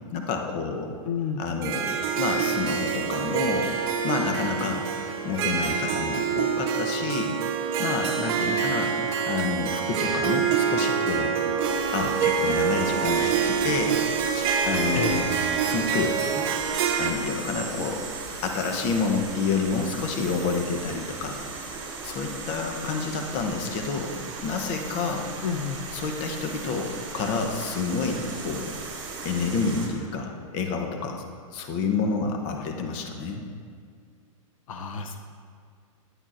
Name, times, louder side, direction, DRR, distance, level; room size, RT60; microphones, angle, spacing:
voice 1, 0.1-0.9 1.4-3.7 4.0-4.9 5.2-7.4 7.8-8.9 9.3-11.4 11.9-14.0 14.3-15.3 15.6-16.2 17.0-18.0 18.4-21.4 22.0-24.1 24.4-25.3 25.9-28.7 29.2-31.2 31.5-33.4, left 4 dB, 35° left, 4 dB, 0.8 m, -29 dB
voice 2, 1.1-1.4 15.0-15.2 25.4-25.8 34.7-35.2, left 7 dB, 70° left, 5 dB, 0.6 m, -30 dB
Harp, 1.6-17.1, right 7 dB, 45° right, 0.9 m, -26 dB
sound 1, 11.6-29.9, right 4 dB, 25° right, 1.6 m, -37 dB
10.0 x 8.7 x 2.5 m, 2.1 s
hypercardioid pair, 145°, 18 cm